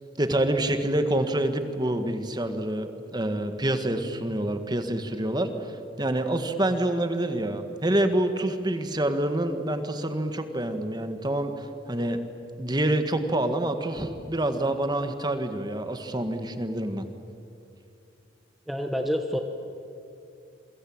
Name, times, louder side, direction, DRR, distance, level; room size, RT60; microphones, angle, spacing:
voice 1, 0.2-12.2 12.6-17.0, right 1 dB, 25° right, 8 dB, 1.7 m, -27 dB
voice 2, 18.7-19.4, equal, ahead, 4 dB, 1.2 m, -27 dB
28.0 x 23.5 x 8.8 m, 2.6 s
head